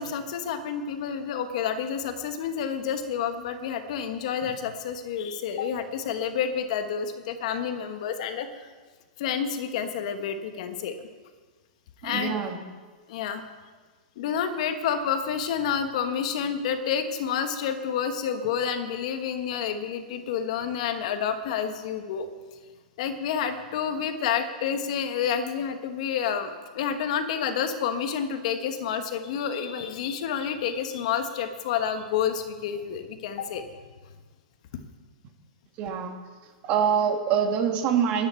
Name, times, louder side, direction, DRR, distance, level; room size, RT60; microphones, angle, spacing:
voice 1, 0.0-8.5 9.2-10.9 12.0-12.3 13.1-13.4 14.2-22.3 23.0-33.7, left 7 dB, 55° left, 8 dB, 1.3 m, -29 dB
voice 2, 12.0-12.6 35.8-36.1 36.6-38.3, right 7 dB, 35° right, 4 dB, 2.0 m, -25 dB
20.5 x 9.6 x 4.6 m, 1.4 s
hypercardioid pair, 145°, 4 cm